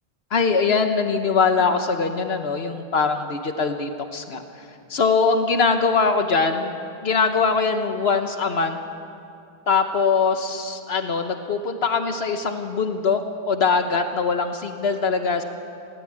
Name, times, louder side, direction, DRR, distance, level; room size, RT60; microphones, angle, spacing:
voice 1, 0.3-4.4 4.9-6.7 7.0-8.8 9.7-15.4, left 5 dB, 80° left, 6 dB, 1.3 m, -22 dB
19.5 x 17.5 x 8.8 m, 2.5 s
omnidirectional pair, 1.0 m